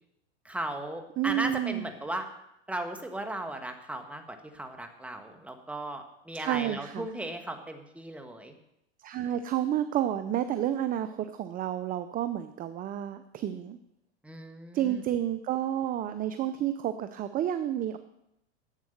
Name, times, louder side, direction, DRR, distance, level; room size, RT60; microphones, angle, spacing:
voice 1, 0.4-2.3 2.7-8.5 14.2-15.0, right 1 dB, 5° right, 5 dB, 1.5 m, -37 dB
voice 2, 1.2-1.9 6.3-7.1 9.0-13.8 14.7-18.0, right 11 dB, 25° right, 11 dB, 0.6 m, -30 dB
11.5 x 8.3 x 6.5 m, 0.83 s
hypercardioid pair, 115°, 34 cm